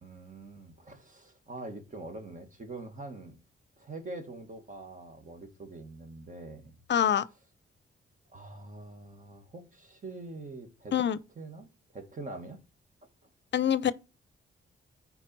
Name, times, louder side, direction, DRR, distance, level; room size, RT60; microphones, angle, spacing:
voice 1, 0.0-3.4 3.8-6.8 8.3-11.0 11.4-11.7 11.9-12.6, right 2 dB, 40° right, 2.0 m, -44 dB
voice 2, 6.9-7.2 10.9-11.2 13.5-13.9, left 9 dB, 60° left, 0.6 m, -25 dB
9.7 x 4.6 x 4.6 m
cardioid pair, 95°, 21 cm